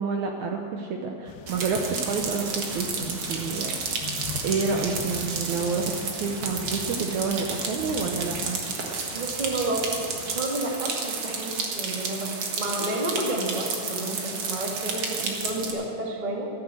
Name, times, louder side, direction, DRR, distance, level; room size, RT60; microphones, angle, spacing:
voice 1, 0.0-4.1 4.4-5.9 6.2-8.6 15.2-15.5, right 5 dB, 70° right, 2 dB, 1.9 m, -29 dB
sound 1, 1.3-10.5, left 7 dB, 80° left, 2.4 m, -41 dB
sound 2, 1.5-15.7, right 4 dB, 50° right, 2.1 m, -32 dB
voice 2, 9.1-16.5, right 1 dB, 25° right, -1 dB, 1.0 m, -31 dB
13.5 x 11.0 x 7.6 m, 2.5 s
omnidirectional pair, 4.3 m